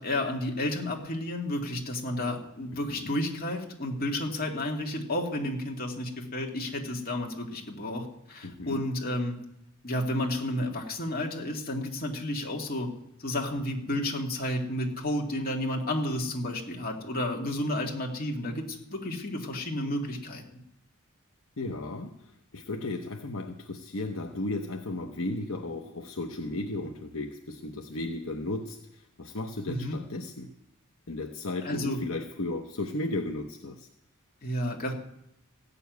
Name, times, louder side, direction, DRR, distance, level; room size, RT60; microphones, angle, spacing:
voice 1, 0.0-9.4 9.8-12.9 13.2-20.4 29.7-30.0 31.6-32.0 34.4-34.9, left 1 dB, 45° left, 0 dB, 2.5 m, -31 dB
voice 2, 8.4-8.8 21.6-30.5 31.1-33.9, left 2 dB, 70° left, 3 dB, 0.9 m, -35 dB
15.5 x 7.0 x 9.4 m, 0.79 s
head